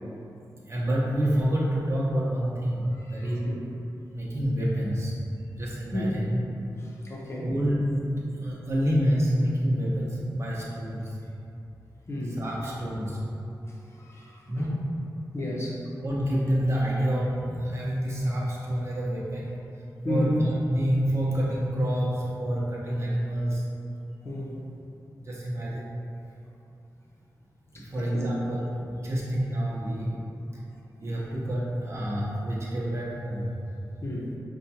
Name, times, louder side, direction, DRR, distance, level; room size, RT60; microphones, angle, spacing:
voice 1, 0.7-3.5 4.1-5.2 5.5-6.4 7.4-11.2 12.4-14.2 14.5-15.1 16.0-19.5 20.1-23.7 25.2-26.0 27.7-30.2 31.0-33.6, equal, 40° right, -5 dB, 0.8 m, -28 dB
voice 2, 3.0-3.6 5.9-6.2 7.0-7.5 12.1-12.4 14.0-14.4 15.3-15.8 20.0-20.3 24.2-24.6 27.7-28.3 34.0-34.3, left 1 dB, 40° left, -4 dB, 0.7 m, -32 dB
5.0 x 2.3 x 2.8 m, 2.7 s
wide cardioid pair, 80°, 7 cm